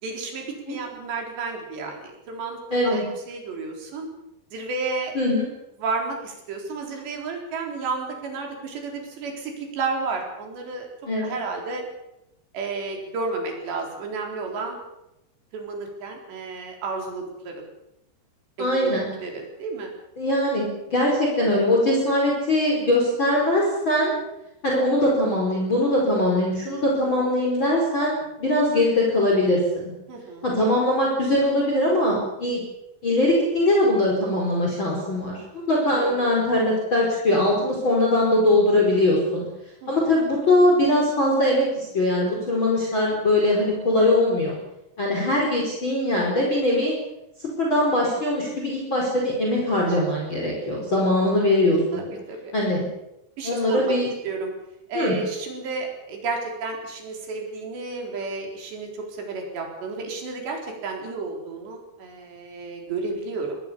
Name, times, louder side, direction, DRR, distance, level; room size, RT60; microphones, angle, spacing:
voice 1, 0.0-4.1 4.5-5.2 5.8-10.9 11.2-11.8 12.5-14.8 15.5-17.6 18.6-18.9 19.2-19.9 27.0-27.1 30.1-30.4 35.9-36.2 39.8-40.1 51.9-52.5 53.4-53.9 54.2-54.5 54.9-63.6, right 4 dB, 85° right, 1 dB, 6.4 m, -32 dB
voice 2, 2.7-3.0 5.1-5.5 11.1-11.4 18.6-19.1 20.2-24.1 24.6-29.9 30.4-32.6 33.0-39.4 39.9-44.6 45.0-46.9 47.6-52.1 52.5-52.9 53.4-54.1 54.9-55.1, left 1 dB, 30° left, -2 dB, 5.5 m, -21 dB
25.0 x 19.5 x 7.1 m, 0.87 s
omnidirectional pair, 4.9 m